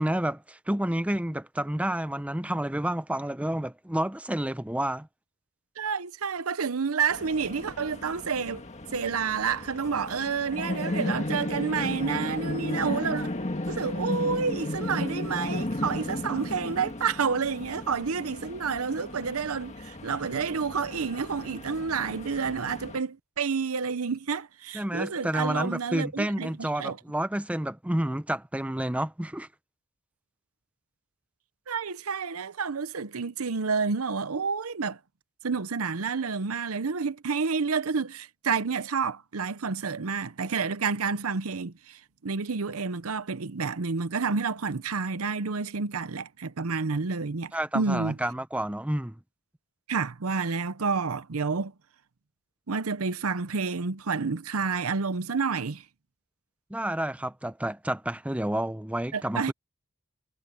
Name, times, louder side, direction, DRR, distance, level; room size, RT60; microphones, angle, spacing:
voice 1, 0.0-5.1 24.7-29.5 47.5-49.2 56.7-59.5, right 1 dB, 5° right, 0.6 m, -30 dB
voice 2, 5.8-8.6 8.9-13.3 13.7-27.0 31.7-35.0 35.4-48.2 49.9-51.7 52.7-55.8 59.1-59.5, right 5 dB, 90° right, 0.8 m, -29 dB
sound 1, 7.1-23.0, left 1 dB, 35° left, 1.7 m, -35 dB
head